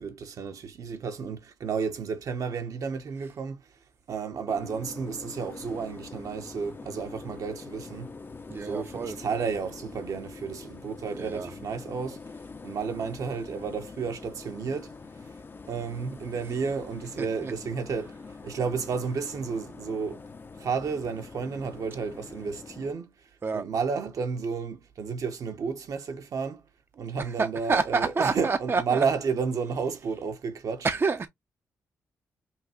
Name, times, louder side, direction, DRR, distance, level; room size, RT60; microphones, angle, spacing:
voice 1, 0.0-3.6 4.1-8.1 8.6-12.2 12.6-14.9 15.7-18.2 18.4-20.2 20.6-23.1 23.5-26.6 26.9-30.9, right 5 dB, 65° right, 0.9 m, -32 dB
sound 1, 4.5-22.9, left 4 dB, 35° left, 0.6 m, -44 dB
voice 2, 8.5-9.2 11.1-11.5 17.2-17.5 23.4-23.7 27.2-29.0 30.8-31.3, right 4 dB, 40° right, 0.6 m, -28 dB
5.8 x 2.4 x 2.9 m
supercardioid pair, 50°, 6 cm